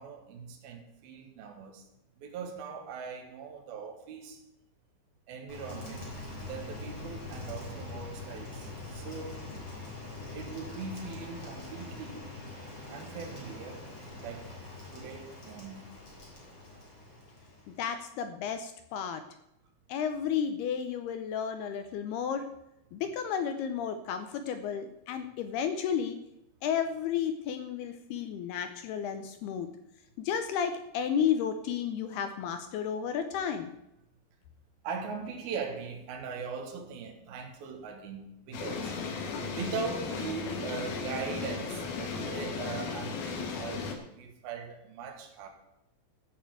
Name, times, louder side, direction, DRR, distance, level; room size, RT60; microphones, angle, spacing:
voice 1, 0.0-1.8 2.2-4.4 5.3-6.1 6.4-9.5 10.3-12.3 12.9-13.8 14.2-14.5 14.9-15.9 33.5-33.6 34.8-45.5, right 5 dB, 65° right, 2 dB, 2.9 m, -40 dB
Rain, 5.5-17.9, left 2 dB, 30° left, 3.7 m, -43 dB
voice 2, 17.7-19.2 19.9-22.5 22.9-26.2 26.6-29.7 30.2-33.7, left 8 dB, 80° left, 9 dB, 2.4 m, -32 dB
sound 1, 38.5-43.9, left 5 dB, 65° left, 3.1 m, -36 dB
13.5 x 6.9 x 7.7 m, 0.84 s
omnidirectional pair, 5.3 m